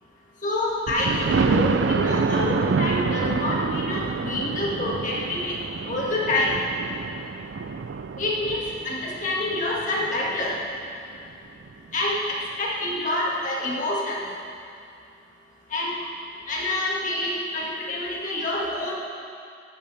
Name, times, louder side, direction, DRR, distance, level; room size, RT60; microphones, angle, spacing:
voice 1, 0.4-5.6 5.9-6.6 8.2-10.6 11.9-14.2 15.7-15.9 16.5-18.9, left 1 dB, 45° left, -4 dB, 2.0 m, -27 dB
Thunder, 0.9-10.6 11.2-11.3 11.7-11.8 12.0-12.1, right 4 dB, 85° right, 0.4 m, -27 dB
14.0 x 10.5 x 3.4 m, 2.4 s
head